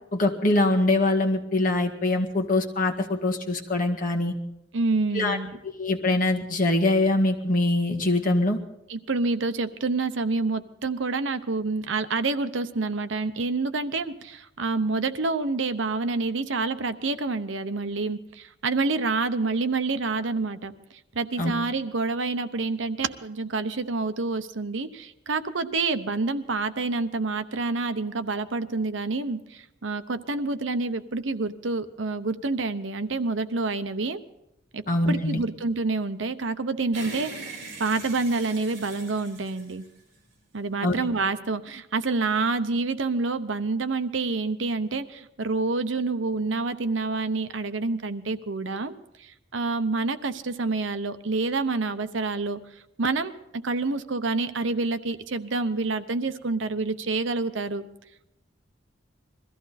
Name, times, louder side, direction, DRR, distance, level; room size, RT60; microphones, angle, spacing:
voice 1, 0.1-4.3 5.1-5.4 5.8-8.6 21.4-21.5 34.9-35.4 40.8-40.9, left 2 dB, 45° left, 2 dB, 1.8 m, -23 dB
voice 2, 4.7-5.6 8.9-20.7 21.1-34.2 34.7-37.3 37.8-39.8 40.5-57.8, right 3 dB, 75° right, 11 dB, 0.9 m, -28 dB
sound 1, 36.9-40.4, right 3 dB, 55° right, 4.7 m, -41 dB
22.0 x 14.5 x 4.2 m, 0.85 s
head